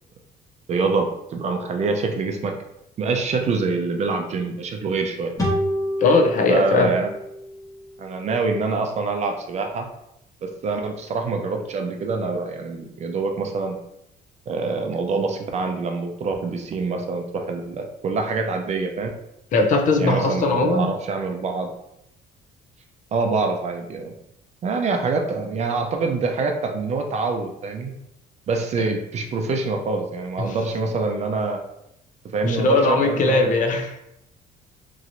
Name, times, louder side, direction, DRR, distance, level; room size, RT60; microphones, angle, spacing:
voice 1, 0.7-2.5 3.0-5.3 6.5-7.1 8.0-9.9 10.4-13.8 14.5-19.1 20.0-21.7 23.1-24.1 24.6-27.9 28.5-31.6 32.3-33.5, right 4 dB, 40° right, 4 dB, 0.5 m, -25 dB
sound 1, 5.4-8.7, equal, 20° left, 1.1 m, -29 dB
voice 2, 6.0-6.9 19.5-20.9 30.5-30.6 32.4-34.0, left 3 dB, 50° left, 4 dB, 0.5 m, -19 dB
3.0 x 2.8 x 2.6 m, 0.81 s
cardioid pair, 110°, 17 cm